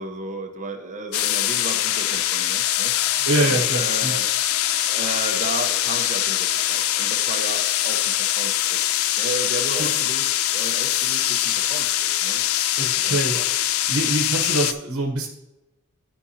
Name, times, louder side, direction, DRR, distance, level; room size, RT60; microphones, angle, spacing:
voice 1, 0.0-8.8 9.2-12.4 13.1-13.5, right 2 dB, 35° right, 3 dB, 1.0 m, -34 dB
sound 1, 1.1-14.7, left 12 dB, 70° left, 0.4 m, -23 dB
voice 2, 3.2-4.2 9.8-9.9 12.8-13.4 13.9-15.3, right 2 dB, 85° right, -1 dB, 1.1 m, -24 dB
13.0 x 5.1 x 2.8 m, 0.97 s
head